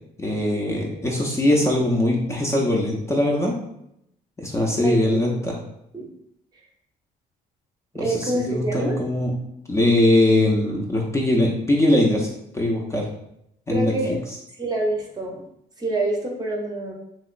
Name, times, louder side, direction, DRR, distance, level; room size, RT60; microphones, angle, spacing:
voice 1, 0.2-3.5 4.4-5.5 7.9-9.3 9.7-12.3 12.5-13.1 13.7-13.9, left 1 dB, 15° left, -1 dB, 0.4 m, -21 dB
voice 2, 4.8-5.2 5.9-6.1 7.9-9.0 13.7-14.1 14.6-15.4 15.8-16.9, right 2 dB, 25° right, 0 dB, 0.6 m, -26 dB
2.9 x 2.9 x 2.4 m, 0.77 s
cardioid pair, 110°, 17 cm